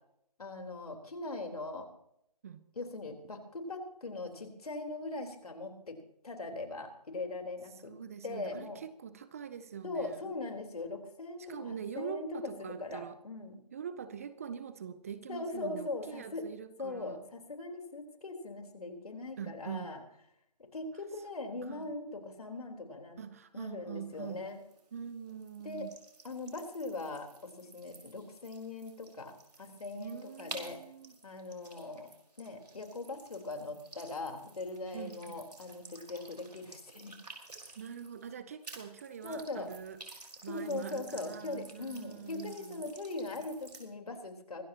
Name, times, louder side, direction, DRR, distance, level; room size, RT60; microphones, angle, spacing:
voice 1, 0.4-1.9 2.8-6.0 6.2-7.9 8.2-8.8 9.8-13.6 15.3-16.5 16.8-20.0 20.6-23.2 23.5-24.6 25.6-25.9 26.2-30.8 31.2-32.1 32.4-37.2 39.2-39.7 40.5-44.6, left 3 dB, 65° left, 4 dB, 4.0 m, -40 dB
voice 2, 7.9-10.3 11.5-13.2 13.7-17.3 19.4-19.9 21.7-21.9 23.2-24.5 24.9-25.9 30.0-31.2 34.9-35.4 37.8-40.0 40.4-42.9, right 8 dB, 20° right, 13 dB, 0.6 m, -44 dB
sound 1, 24.1-38.4 38.6-43.9, right 3 dB, 80° right, 5.0 m, -53 dB
24.5 x 13.5 x 2.9 m, 0.76 s
figure-of-eight pair, 155°, 20 cm